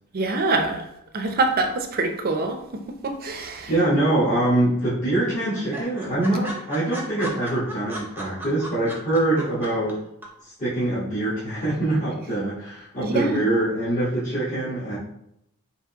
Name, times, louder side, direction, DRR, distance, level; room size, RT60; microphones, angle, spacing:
voice 1, 0.1-0.8 1.1-3.8 13.0-13.4, right 3 dB, 45° right, 5 dB, 0.5 m, -25 dB
voice 2, 3.7-10.0 10.4-15.0, right 1 dB, 35° left, -12 dB, 1.3 m, -24 dB
sound 1, 3.9-4.5 4.8-4.9 5.2-5.3 5.5-9.9 10.2-10.3, equal, 10° right, 0.7 m, -36 dB
4.9 x 2.7 x 2.9 m, 0.78 s
head